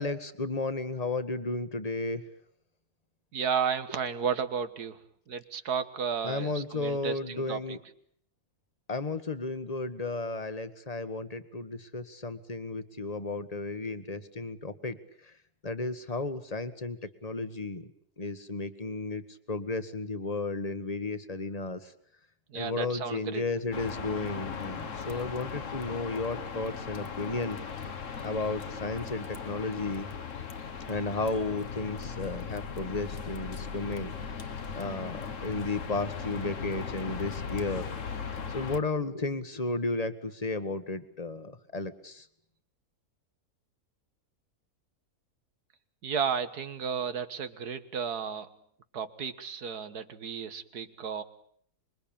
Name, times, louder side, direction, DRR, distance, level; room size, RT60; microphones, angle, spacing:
voice 1, 0.0-2.2 6.2-7.8 8.9-15.0 15.2-15.3 15.6-17.9 18.2-19.2 19.5-21.9 22.5-27.6 28.2-30.1 30.9-34.1 34.7-37.9 38.5-42.3, left 3 dB, 25° left, 11 dB, 1.5 m, -33 dB
voice 2, 3.3-5.0 5.3-7.8 22.5-23.4 46.0-48.5 48.9-51.2, right 6 dB, 85° right, 11 dB, 2.0 m, -33 dB
sound 1, 23.7-38.8, left 6 dB, 55° left, 1.7 m, -38 dB
26.0 x 23.0 x 8.9 m, 0.64 s
omnidirectional pair, 1.6 m